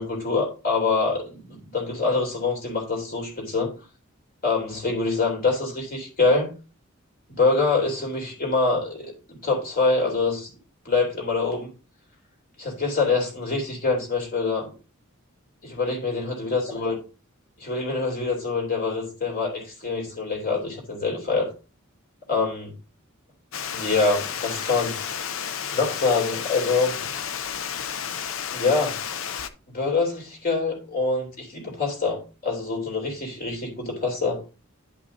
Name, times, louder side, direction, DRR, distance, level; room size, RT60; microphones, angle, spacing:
voice 1, 0.0-3.7 4.4-6.5 7.4-9.1 9.4-10.5 10.8-11.7 12.6-14.7 15.6-16.9 17.6-21.5 22.3-22.7 23.7-25.2 25.7-26.9 28.5-29.0 29.7-34.4, left 3 dB, 45° left, 3.1 m, -25 dB
Water, 23.5-29.5, left 8 dB, 70° left, 0.6 m, -32 dB
11.0 x 5.6 x 2.7 m
head